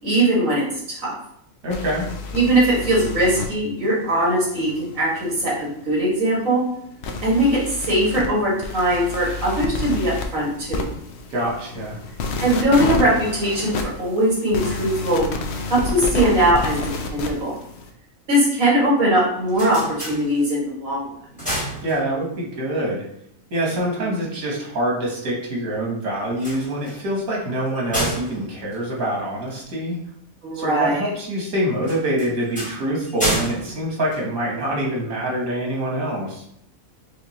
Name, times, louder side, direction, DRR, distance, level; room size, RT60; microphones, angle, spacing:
voice 1, 0.0-0.7 1.0-1.2 2.3-6.6 7.2-10.9 12.4-15.3 15.7-16.8 17.1-17.6 18.3-21.0 24.0-24.1 30.4-31.1, right 1 dB, 70° right, -5 dB, 2.0 m, -20 dB
voice 2, 1.6-2.0 11.3-12.0 21.8-23.0 23.5-30.0 30.5-36.4, right 1 dB, 90° right, -2 dB, 1.6 m, -25 dB
sound 1, 1.7-3.5 3.8-17.9, left 3 dB, 65° left, 0.7 m, -30 dB
sound 2, 19.3-20.8 21.1-22.5 26.2-29.7 31.8-34.9, equal, 5° left, 1.2 m, -30 dB
5.1 x 2.4 x 2.8 m, 0.71 s
omnidirectional pair, 1.4 m